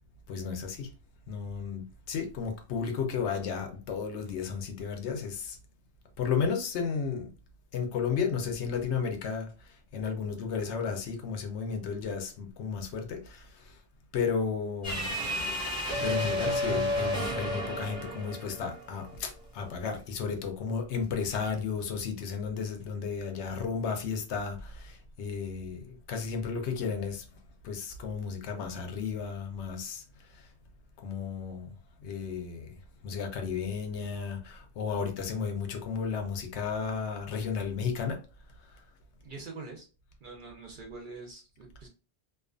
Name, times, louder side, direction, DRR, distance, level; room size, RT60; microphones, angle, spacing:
voice 1, 0.3-0.9 1.3-5.6 6.2-7.3 7.7-13.8 14.1-15.1 16.0-27.2 27.6-30.0 30.4-30.5 31.0-31.7 32.0-32.8 33.0-38.2, left 6 dB, 75° left, 0.8 m, -33 dB
sound 1, 14.8-19.2, left 1 dB, 5° right, 0.8 m, -32 dB
voice 2, 39.2-39.9 40.2-41.9, right 3 dB, 55° right, 0.6 m, -44 dB
2.3 x 2.3 x 2.4 m
omnidirectional pair, 1.2 m